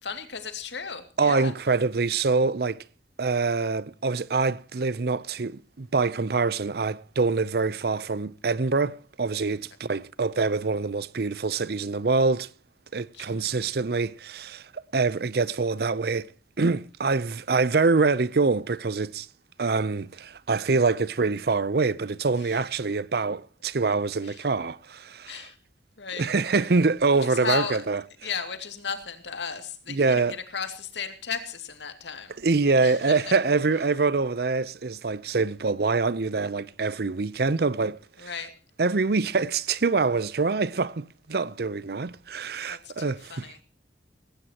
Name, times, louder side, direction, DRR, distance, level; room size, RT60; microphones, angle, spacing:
voice 1, 0.0-1.5 13.1-13.5 22.4-22.7 24.2-24.5 25.3-25.6 26.0-26.3 26.5-26.6 27.2-27.8 28.2-32.3 32.8-33.3 38.2-38.5 42.7-43.6, left 6 dB, 85° left, 2.5 m, -35 dB
voice 2, 1.2-2.8 3.2-12.5 12.9-16.3 16.6-19.3 19.6-25.4 26.2-28.0 29.9-30.3 32.4-38.3 38.8-43.6, right 4 dB, 60° right, 0.6 m, -25 dB
18.5 x 17.0 x 2.9 m
head